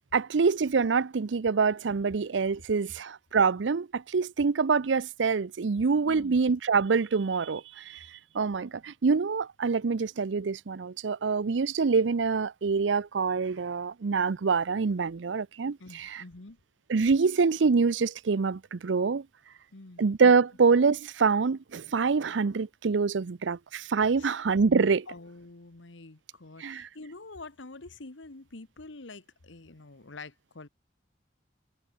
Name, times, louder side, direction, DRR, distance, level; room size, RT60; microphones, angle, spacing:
voice 1, 0.1-8.1 8.3-16.2 16.9-19.3 20.0-25.1 26.6-26.9, right 5 dB, 75° right, 0.6 m, -25 dB
voice 2, 6.0-6.4 15.8-16.6 19.7-20.0 24.2-24.3 25.1-30.7, left 3 dB, 90° left, 1.5 m, -46 dB
open air
head